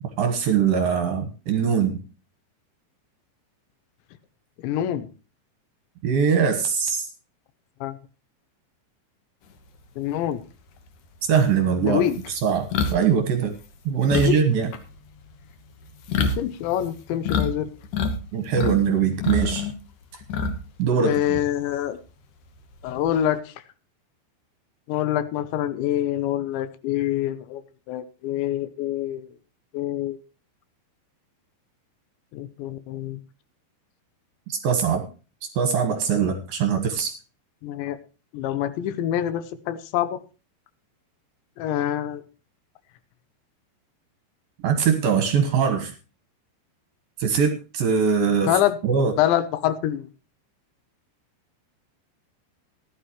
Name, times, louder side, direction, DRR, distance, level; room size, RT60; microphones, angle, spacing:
voice 1, 0.2-2.0 6.0-7.1 11.3-12.0 12.3-13.5 13.9-14.7 18.3-19.7 20.8-21.4 34.5-35.0 35.6-37.1 44.6-45.9 47.2-49.1, right 6 dB, 65° right, 7 dB, 2.5 m, -22 dB
voice 2, 4.6-5.1 7.8-8.0 10.0-10.4 11.8-12.2 14.1-14.4 16.2-17.7 21.0-22.0 22.8-23.5 24.9-27.6 27.9-29.3 29.7-30.2 32.3-33.2 37.6-38.0 38.3-40.2 41.6-42.2 48.5-48.8 49.2-50.1, left 11 dB, 80° left, 13 dB, 3.0 m, -25 dB
sound 1, 10.8-10.9 11.3-17.5 17.8-18.8 19.1-20.8 21.1-21.3 22.7-23.3, left 4 dB, 65° left, 2.1 m, -27 dB
16.0 x 11.5 x 3.1 m, 0.33 s
omnidirectional pair, 5.4 m